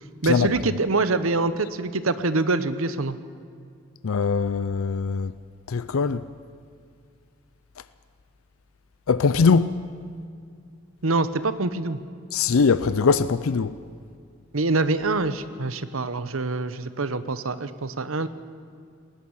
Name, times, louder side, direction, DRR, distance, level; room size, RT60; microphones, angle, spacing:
voice 1, 0.2-3.2 11.0-12.0 14.5-18.3, right 3 dB, 80° right, 0.9 m, -25 dB
voice 2, 4.0-5.3 5.7-6.2 9.1-9.7 12.3-13.7, left 5 dB, 80° left, 0.5 m, -21 dB
19.5 x 19.0 x 7.2 m
head